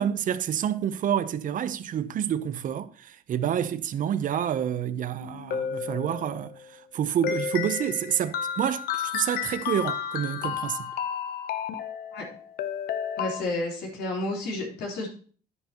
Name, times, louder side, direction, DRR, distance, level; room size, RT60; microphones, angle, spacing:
voice 1, 0.0-10.9, right 9 dB, 50° right, 0.8 m, -28 dB
sound 1, 5.2-6.5 7.2-13.4, left 8 dB, 65° left, 0.8 m, -32 dB
voice 2, 13.2-15.1, left 2 dB, 80° left, 3.9 m, -31 dB
10.0 x 9.6 x 3.0 m
cardioid pair, 110°, 17 cm